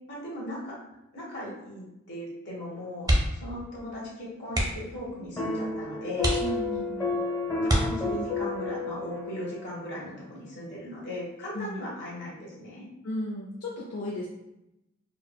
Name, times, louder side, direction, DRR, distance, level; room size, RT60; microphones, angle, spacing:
voice 1, 0.1-0.8 1.1-6.4 7.6-12.8, left 1 dB, 55° left, -4 dB, 1.2 m, -38 dB
sound 1, 3.0-3.5 3.8-4.0 4.5-5.0 5.6-5.7 6.2-6.9 7.6-8.4 10.0-10.3 10.6-10.7, right 1 dB, 15° right, 0.6 m, -27 dB
sound 2, 5.4-9.8, left 3 dB, 15° left, 0.8 m, -31 dB
voice 2, 6.4-7.1 11.5-11.9 13.0-14.3, equal, 70° left, -5 dB, 0.6 m, -35 dB
4.4 x 2.1 x 2.2 m, 0.88 s
head